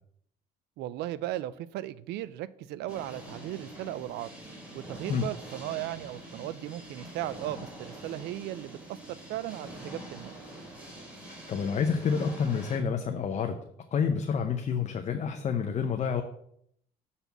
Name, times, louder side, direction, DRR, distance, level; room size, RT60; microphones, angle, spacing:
voice 1, 0.8-4.3 4.7-10.4, right 14 dB, 80° right, 18 dB, 0.4 m, -37 dB
sound 1, 2.9-12.8, right 1 dB, 10° right, 2.8 m, -45 dB
voice 2, 11.3-13.6 13.9-16.2, left 6 dB, 40° left, 6 dB, 0.6 m, -29 dB
6.8 x 4.1 x 5.9 m, 0.70 s
cardioid pair, 110°, 17 cm